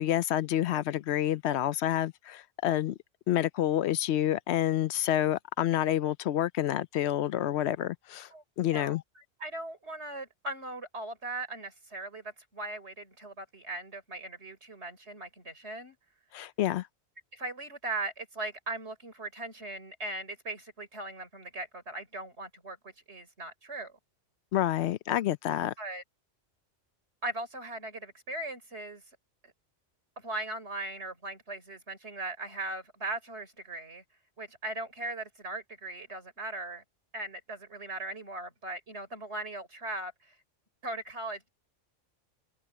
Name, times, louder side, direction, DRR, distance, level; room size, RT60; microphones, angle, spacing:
voice 1, 0.0-3.0 3.3-8.3 8.6-9.0 16.3-16.9 24.5-25.7, left 12 dB, 70° left, 0.8 m, -28 dB
voice 2, 8.3-16.0 17.3-24.0 25.8-26.0 27.2-29.0 29.4-29.5 30.2-34.0 34.4-36.8 37.1-40.3 40.8-41.5, right 2 dB, 60° right, 5.0 m, -39 dB
omnidirectional pair, 1.3 m